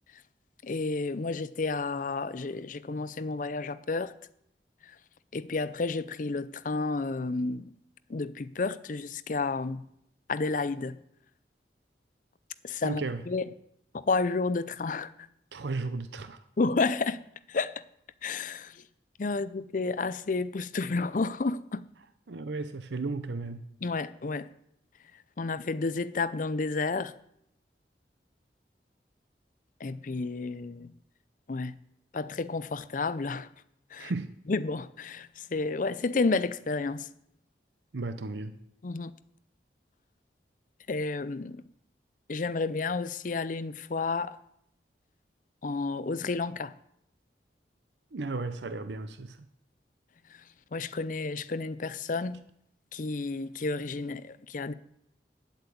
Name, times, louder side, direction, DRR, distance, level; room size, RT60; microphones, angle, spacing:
voice 1, 0.6-4.1 5.3-7.7 8.1-9.9 10.3-11.0 12.6-13.4 13.9-15.1 16.6-17.2 17.5-17.8 18.2-18.8 19.2-21.9 23.8-24.5 25.4-27.1 29.8-30.9 31.5-31.7 32.1-33.5 33.9-34.1 34.5-37.1 38.8-39.1 40.9-41.6 42.3-44.4 45.6-46.7 50.7-52.4 52.9-54.7, left 3 dB, 50° left, 0.5 m, -31 dB
voice 2, 12.8-13.2 15.5-16.4 22.3-23.6 34.0-34.3 37.9-38.6 48.1-49.4, right 3 dB, 85° right, 0.7 m, -34 dB
9.8 x 8.1 x 8.4 m
head